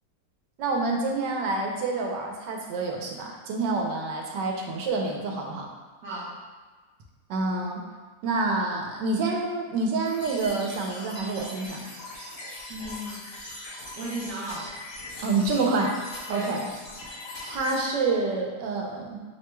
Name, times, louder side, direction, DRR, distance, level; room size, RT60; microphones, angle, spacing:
voice 1, 0.6-5.7 7.3-7.8 8.2-11.9 15.2-16.0 16.3-16.6 17.5-19.2, right 3 dB, 85° right, 0 dB, 1.3 m, -27 dB
voice 2, 6.0-6.4 12.7-13.4 13.9-14.8 16.3-16.7, right 1 dB, 70° right, -5 dB, 1.0 m, -35 dB
sound 1, 10.1-17.8, left 1 dB, 85° left, 1.7 m, -41 dB
6.3 x 3.0 x 2.2 m, 1.4 s
omnidirectional pair, 1.8 m